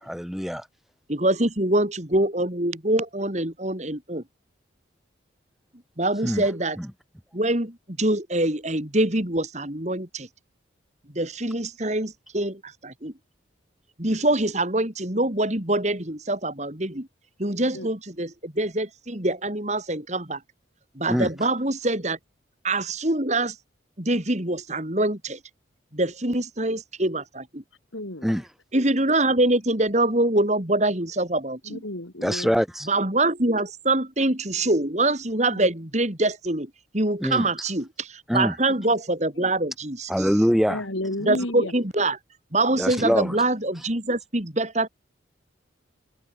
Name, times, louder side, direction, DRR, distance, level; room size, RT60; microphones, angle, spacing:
voice 1, 0.0-0.7 6.2-6.4 6.8-6.9 21.1-21.3 28.2-28.4 32.2-32.9 37.2-37.5 38.3-38.5 40.1-40.8 42.8-43.4, equal, ahead, 2.2 m, -23 dB
voice 2, 1.1-4.2 6.0-6.8 7.3-10.3 11.1-13.1 14.0-17.1 17.4-20.4 20.9-22.2 22.6-23.6 24.0-25.4 25.9-27.6 28.7-31.8 32.9-40.3 41.2-42.2 42.5-44.9, right 2 dB, 35° right, 3.0 m, -24 dB
voice 3, 27.9-28.3 31.6-32.6 35.5-35.7 40.7-41.7, left 1 dB, 85° left, 4.2 m, -32 dB
head